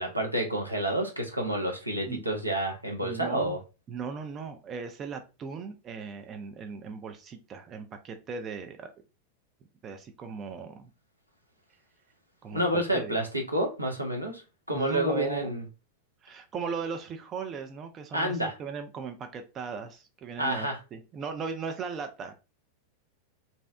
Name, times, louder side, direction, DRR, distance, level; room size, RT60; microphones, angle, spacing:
voice 1, 0.0-3.6 12.5-14.4 14.7-15.6 18.1-18.6 20.4-20.8, right 1 dB, 85° right, 0.6 m, -29 dB
voice 2, 3.0-3.6 3.9-8.9 9.8-10.9 12.4-13.1 14.7-15.5 16.2-22.3, right 5 dB, 30° right, 0.3 m, -37 dB
2.6 x 2.0 x 2.3 m
figure-of-eight pair, 90°, 0 cm